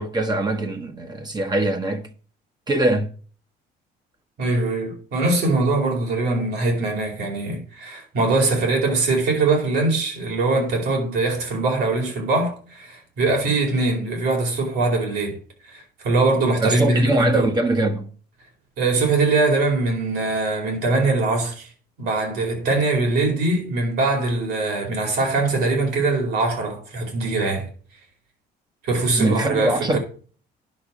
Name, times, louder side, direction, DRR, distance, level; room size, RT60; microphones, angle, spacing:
voice 1, 0.0-2.1 2.7-3.1 16.6-18.1 29.2-30.0, right 2 dB, 25° right, 1.2 m, -22 dB
voice 2, 4.4-15.4 15.6-17.5 18.8-21.7 22.0-27.7 28.8-30.0, right 3 dB, 75° right, 4.7 m, -22 dB
10.5 x 6.0 x 4.9 m
cardioid pair, 110°, 17 cm